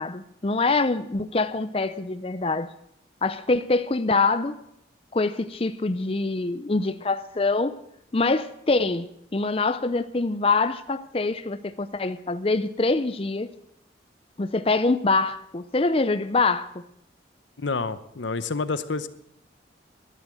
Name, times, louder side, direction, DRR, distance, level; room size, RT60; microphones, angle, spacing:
voice 1, 0.0-2.7 3.2-4.6 5.1-7.8 8.1-13.5 14.4-16.8, left 3 dB, 30° left, 0.5 m, -24 dB
voice 2, 17.6-19.1, left 4 dB, 85° left, 0.9 m, -28 dB
13.0 x 10.5 x 7.7 m
head